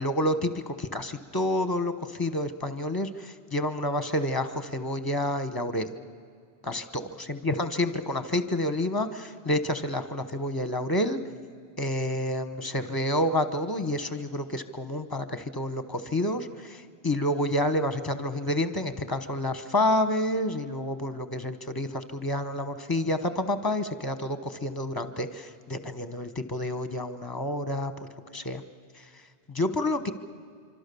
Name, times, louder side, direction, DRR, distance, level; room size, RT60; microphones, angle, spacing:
voice 1, 0.0-6.0 6.6-11.2 11.8-27.9 28.3-28.6 29.5-30.1, left 1 dB, 20° left, 10 dB, 1.1 m, -29 dB
25.5 x 25.0 x 7.0 m, 2.3 s
omnidirectional pair, 1.1 m